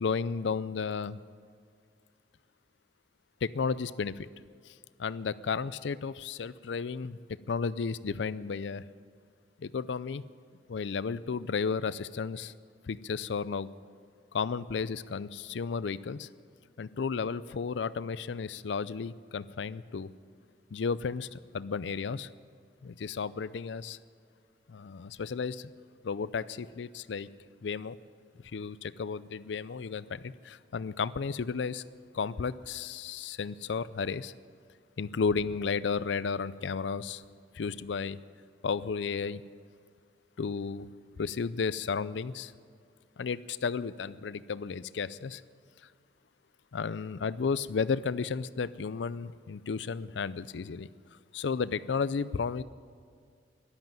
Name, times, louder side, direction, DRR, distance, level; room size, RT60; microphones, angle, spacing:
voice 1, 0.0-1.2 3.4-4.3 4.7-4.8 5.0-7.2 7.5-8.8 9.6-10.2 10.7-12.5 12.8-13.7 14.3-16.3 16.8-20.1 20.7-22.3 22.8-24.0 24.7-25.7 26.0-27.3 27.6-28.0 28.4-31.8 32.1-34.3 35.0-37.2 37.5-38.2 38.6-39.4 40.4-40.9 41.2-42.5 43.2-45.4 46.7-50.9 51.3-52.6, left 5 dB, 80° left, 16 dB, 0.5 m, -33 dB
13.5 x 12.0 x 9.0 m, 2.1 s
head